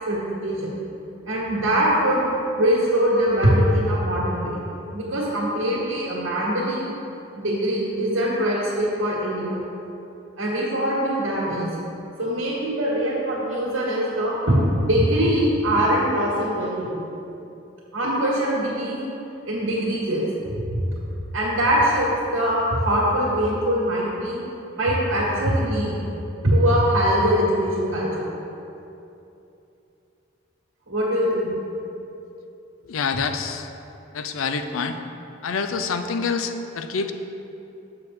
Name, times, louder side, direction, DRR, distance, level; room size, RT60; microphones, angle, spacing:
voice 1, 0.1-0.8 1.3-2.3 2.6-4.6 4.9-6.9 7.3-9.6 10.4-11.7 12.2-17.0 17.9-19.0 19.5-20.2 20.7-20.8 21.3-24.4 24.8-26.0 26.4-28.1 30.9-31.5, equal, 85° right, -7 dB, 1.7 m, -22 dB
voice 2, 32.9-33.7 34.1-35.0 35.4-37.1, left 5 dB, 90° left, 8 dB, 0.5 m, -26 dB
6.6 x 6.6 x 4.3 m, 2.8 s
head